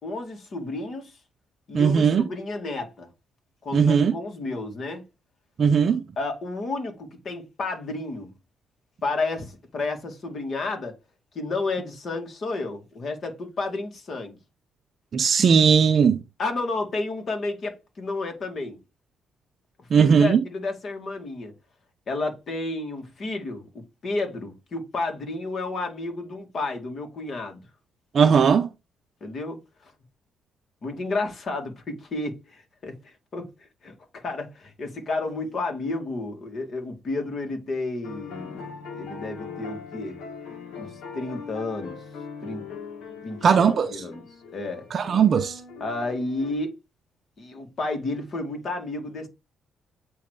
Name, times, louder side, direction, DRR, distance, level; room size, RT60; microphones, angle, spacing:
voice 1, 0.0-1.1 1.7-3.1 3.6-5.0 6.2-8.3 9.0-11.0 11.3-14.4 16.4-18.8 19.9-21.5 22.1-23.7 24.0-27.6 29.2-29.9 30.8-33.5 33.8-38.6 39.0-40.2 40.8-42.0 42.4-42.6 43.2-44.2 44.5-44.9 45.8-46.7 47.4-49.3, left 2 dB, 50° left, 2.3 m, -31 dB
voice 2, 1.7-2.2 3.7-4.1 5.6-6.0 15.1-16.2 19.9-20.4 28.1-28.7 43.4-43.9 44.9-45.6, right 6 dB, 50° right, 0.6 m, -18 dB
sound 1, 38.0-46.5, left 6 dB, 80° left, 1.7 m, -40 dB
8.3 x 3.2 x 4.7 m
cardioid pair, 90°, 0 cm